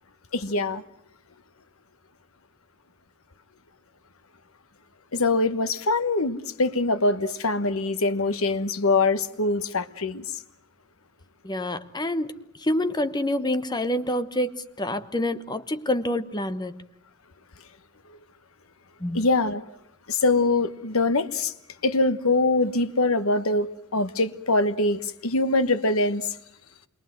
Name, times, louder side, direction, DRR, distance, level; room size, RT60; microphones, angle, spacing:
voice 1, 0.3-0.8 5.1-10.2 19.1-19.6 20.1-21.5 21.8-26.3, left 2 dB, 70° left, 1.3 m, -23 dB
voice 2, 11.4-16.8 19.0-19.2, left 1 dB, 20° left, 1.1 m, -27 dB
27.5 x 22.5 x 7.8 m
head